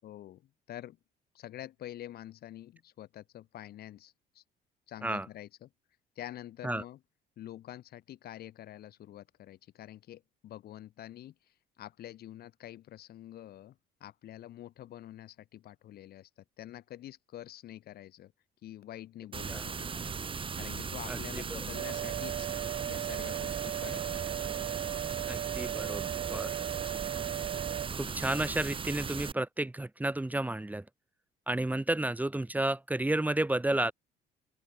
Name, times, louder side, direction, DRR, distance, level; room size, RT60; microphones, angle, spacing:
voice 1, 0.0-1.0 1.3-4.4 4.9-5.7 6.2-7.0 7.4-11.3 11.8-16.3 16.6-18.3 18.6-20.1 20.6-22.5 22.8-24.5, left 12 dB, 65° left, 7.9 m, -47 dB
sound 1, 19.3-29.3, right 5 dB, 30° right, 2.8 m, -38 dB
sound 2, 21.7-27.9, right 14 dB, 70° right, 3.7 m, -37 dB
voice 2, 25.3-26.0 26.3-26.6 27.9-30.8 31.5-33.9, right 1 dB, 10° right, 2.9 m, -31 dB
open air
cardioid pair, 110°, 17 cm